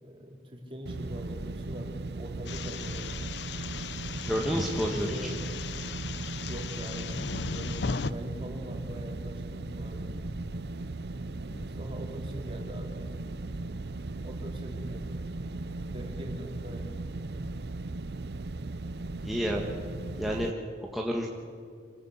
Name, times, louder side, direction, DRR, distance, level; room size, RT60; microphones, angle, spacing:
voice 1, 0.0-3.2 4.8-5.3 6.5-10.1 11.7-13.1 14.2-15.0 15.9-16.9, equal, 30° right, 0 dB, 3.8 m, -42 dB
sound 1, 0.9-20.5, right 2 dB, 65° right, 0.6 m, -37 dB
sound 2, 2.5-8.1, left 5 dB, 75° left, 0.8 m, -37 dB
voice 2, 4.2-5.3 11.5-11.6 19.2-19.7 20.2-20.5 20.9-21.3, equal, ahead, -2 dB, 1.8 m, -29 dB
27.0 x 18.0 x 8.2 m, 2.3 s
head